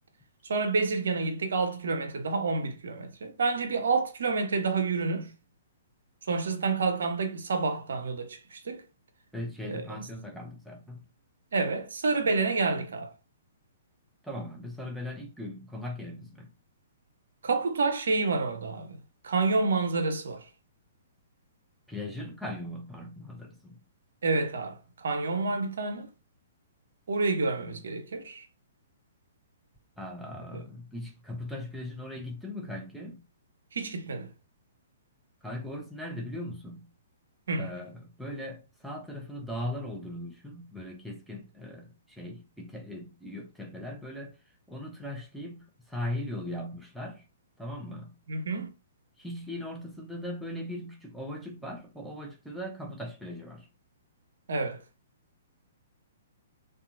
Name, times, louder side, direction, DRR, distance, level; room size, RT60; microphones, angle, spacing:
voice 1, 0.4-5.3 6.3-8.8 9.7-9.8 11.5-13.1 17.4-19.0 19.2-20.4 24.2-26.1 27.1-28.5 33.7-34.3 37.5-37.7 48.3-48.7 54.5-54.8, right 3 dB, 65° right, 0.5 m, -28 dB
voice 2, 9.3-11.1 14.2-16.5 21.9-23.8 30.0-33.2 35.4-36.9 37.6-44.4 44.7-47.2 47.6-48.2 49.2-53.7, left 1 dB, ahead, 0.6 m, -39 dB
2.7 x 2.2 x 2.5 m
figure-of-eight pair, 120°, 0 cm